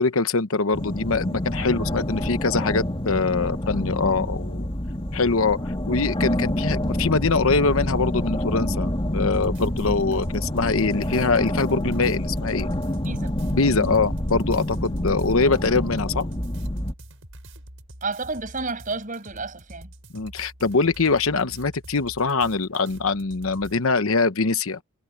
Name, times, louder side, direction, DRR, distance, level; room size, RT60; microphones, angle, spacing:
voice 1, 0.0-4.7 5.1-12.7 13.5-16.3 20.1-24.8, left 4 dB, 70° left, 0.9 m, -23 dB
sound 1, 0.7-16.9, left 1 dB, 25° left, 2.6 m, -27 dB
voice 2, 1.6-1.9 9.8-10.0 13.1-13.3 13.7-14.0 18.0-19.9, right 3 dB, 35° right, 7.2 m, -32 dB
sound 2, 9.3-23.8, right 1 dB, 60° right, 7.6 m, -45 dB
head